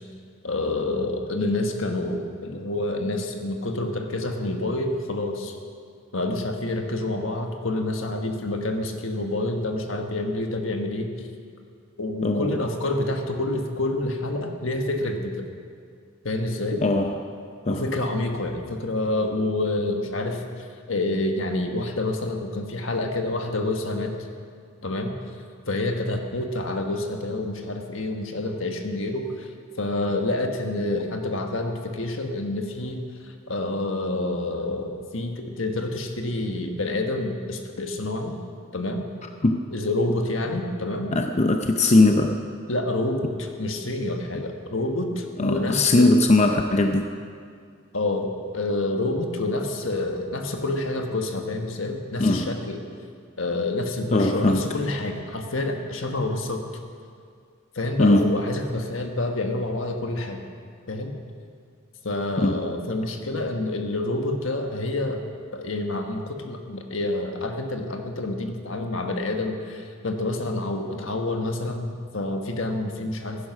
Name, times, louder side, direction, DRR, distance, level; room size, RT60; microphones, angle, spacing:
voice 1, 0.4-5.5 6.1-11.1 12.0-15.5 16.2-16.8 17.7-24.1 24.8-25.1 25.7-29.5 29.8-33.0 33.5-38.3 38.7-39.0 39.7-41.1 42.7-46.1 47.9-52.8 53.4-56.7 57.7-60.4 60.9-61.1 62.0-65.2 65.5-73.5, left 2 dB, 75° left, 4 dB, 1.5 m, -28 dB
voice 2, 12.2-12.5 16.8-17.2 17.7-17.8 39.4-39.6 41.1-42.4 45.4-47.1 52.2-52.6 54.1-54.7 58.0-58.4 62.4-62.6, left 2 dB, 35° left, 5 dB, 0.6 m, -20 dB
16.0 x 10.5 x 6.2 m, 2.2 s
head